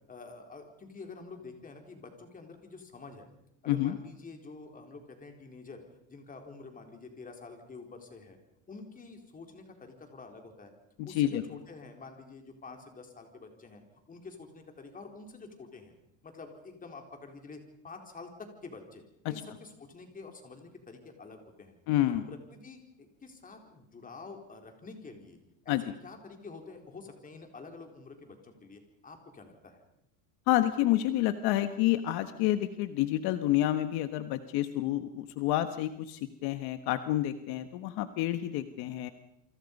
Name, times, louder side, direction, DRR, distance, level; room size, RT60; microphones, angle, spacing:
voice 1, 0.1-3.3 3.6-5.8 6.1-8.4 8.7-10.7 11.0-13.8 14.1-15.9 16.2-21.8 22.3-25.4 25.6-25.8 26.0-29.8, left 4 dB, 20° left, 4 dB, 4.2 m, -48 dB
voice 2, 3.7-4.0 11.0-11.4 19.2-19.4 21.9-22.2 25.7-25.8 30.5-39.1, left 14 dB, 60° left, 10 dB, 1.4 m, -29 dB
28.5 x 25.0 x 5.4 m, 0.82 s
cardioid pair, 145°, 43 cm